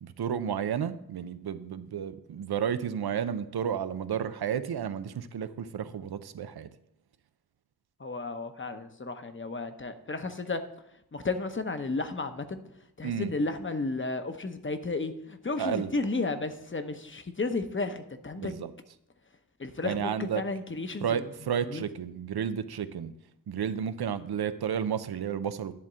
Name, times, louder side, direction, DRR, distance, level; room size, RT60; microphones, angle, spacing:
voice 1, 0.0-6.7 13.0-13.3 15.6-15.9 18.4-18.7 19.8-20.4 21.0-23.1 23.5-25.7, right 8 dB, 90° right, 12 dB, 0.6 m, -32 dB
voice 2, 8.0-10.6 11.1-12.6 13.0-18.5 19.6-21.3 21.7-21.9, left 3 dB, 30° left, 8 dB, 0.9 m, -33 dB
11.0 x 3.7 x 7.4 m, 0.77 s
wide cardioid pair, 70°, 37 cm